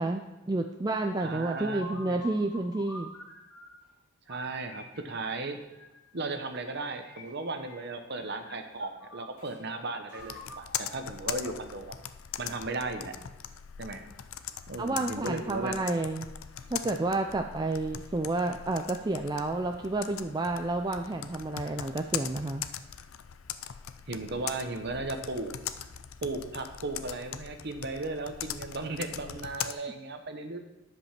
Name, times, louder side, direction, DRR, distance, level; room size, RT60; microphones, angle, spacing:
voice 1, 0.0-3.1 14.8-16.3 16.7-22.6, right 2 dB, 20° right, 4 dB, 0.3 m, -30 dB
sound 1, 1.1-3.9 4.3-6.1 6.7-7.9 8.1-9.6 10.1-11.9, left 1 dB, 90° left, 2.3 m, -48 dB
voice 2, 1.2-2.2 4.3-5.6 6.1-11.9 12.4-13.1 13.8-14.0 14.7-15.8 24.1-25.5 26.2-30.6, right 2 dB, 50° right, 6 dB, 0.9 m, -36 dB
Computer keyboard, 10.2-29.7, left 9 dB, 70° left, 0.5 m, -41 dB
10.0 x 5.4 x 5.9 m, 1.0 s
head